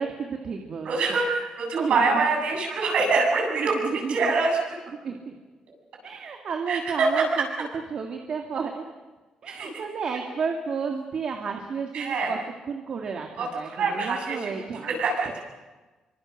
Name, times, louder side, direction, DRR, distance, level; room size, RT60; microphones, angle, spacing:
voice 1, 0.0-1.2 1.7-2.3 3.5-4.3 5.0-5.3 6.0-7.5 7.9-8.8 9.4-12.4 12.7-14.9, right 5 dB, 45° right, 3 dB, 2.2 m, -32 dB
voice 2, 0.8-3.7 4.1-4.6 6.7-7.1 9.5-9.7 11.9-12.4 13.4-15.3, right 4 dB, 60° right, 0 dB, 7.9 m, -25 dB
28.0 x 25.0 x 6.6 m, 1.2 s
cardioid pair, 165°, 2 cm